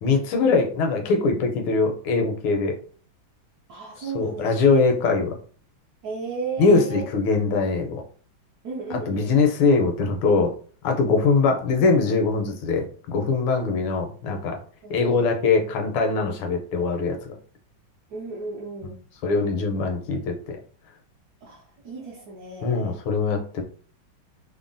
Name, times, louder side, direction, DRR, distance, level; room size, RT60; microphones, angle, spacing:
voice 1, 0.0-2.8 4.0-5.4 6.6-8.0 8.9-10.5 10.8-14.6 14.9-17.2 19.2-20.4 22.6-23.6, left 4 dB, 80° left, 3 dB, 1.4 m, -22 dB
voice 2, 3.7-4.5 6.0-7.1 8.6-9.3 9.7-9.8 14.8-15.4 18.1-19.0 21.4-23.0, right 4 dB, 75° right, -3 dB, 0.9 m, -34 dB
3.5 x 2.1 x 2.5 m, 0.42 s
omnidirectional pair, 2.3 m